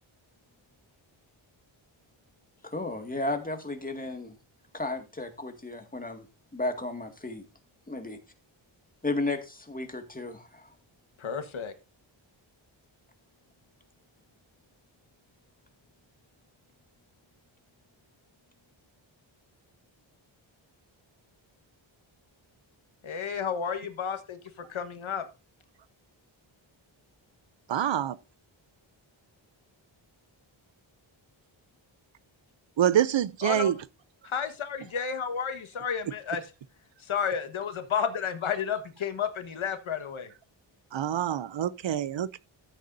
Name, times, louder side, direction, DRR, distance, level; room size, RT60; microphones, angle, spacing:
voice 1, 2.6-4.3 4.7-6.3 6.5-7.4 7.9-8.2 9.0-10.7, left 2 dB, 15° left, 2.0 m, -33 dB
voice 2, 11.2-11.7 23.0-24.4 24.7-25.2 33.4-33.7 34.2-36.4 37.0-40.3, left 7 dB, 80° left, 1.4 m, -31 dB
voice 3, 27.7-28.2 32.8-33.8 40.9-42.4, right 10 dB, 65° right, 0.6 m, -26 dB
13.5 x 8.2 x 2.6 m
wide cardioid pair, 90°, 48 cm